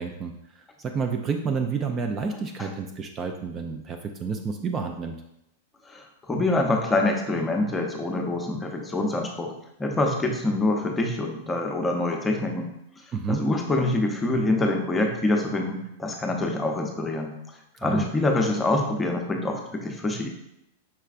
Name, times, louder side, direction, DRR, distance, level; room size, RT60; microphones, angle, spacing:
voice 1, 0.0-5.2 13.1-13.4 17.8-18.1, right 5 dB, 30° right, 4 dB, 0.4 m, -30 dB
voice 2, 5.9-9.5 9.8-12.7 13.3-17.3 17.8-20.3, left 2 dB, 15° left, 2 dB, 0.7 m, -25 dB
5.6 x 3.2 x 2.5 m, 0.83 s
hypercardioid pair, 115°, 0 cm